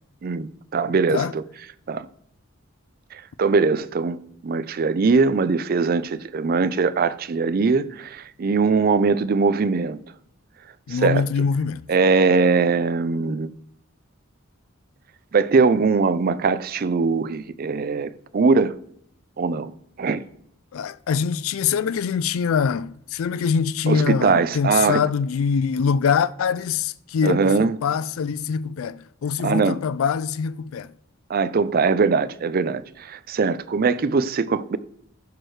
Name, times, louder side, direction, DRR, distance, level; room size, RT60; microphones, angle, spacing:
voice 1, 0.2-1.4 1.9-2.1 3.1-10.0 10.9-11.2 11.9-13.5 15.3-18.8 19.4-19.7 20.0-20.2 23.9-25.0 27.2-27.8 29.4-29.8 31.3-34.8, right 4 dB, 45° right, 0.4 m, -21 dB
voice 2, 10.9-11.8 20.7-30.9, left 6 dB, 75° left, 0.4 m, -24 dB
15.0 x 6.3 x 3.2 m
head